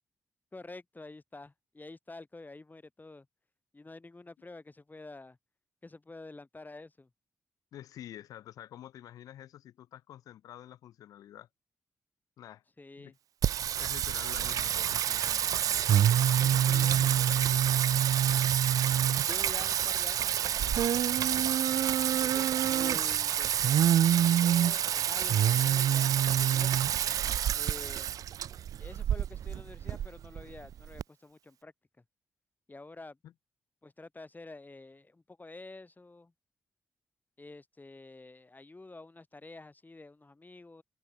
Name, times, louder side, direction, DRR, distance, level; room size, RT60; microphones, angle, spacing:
voice 1, 0.5-3.3 3.7-5.4 5.8-7.1 12.8-13.1 19.3-21.2 22.2-23.5 24.4-26.9 27.5-28.1 28.8-31.7 32.7-33.2 33.8-36.3 37.4-40.8, left 2 dB, 30° left, 6.8 m, -48 dB
voice 2, 7.7-11.5 12.4-12.6 13.0-13.1 13.7-15.8 16.3-17.7 33.2-33.3, left 12 dB, 85° left, 6.6 m, -48 dB
Singing, 13.4-31.0, right 10 dB, 80° right, 1.2 m, -27 dB
supercardioid pair, 40°, 6 cm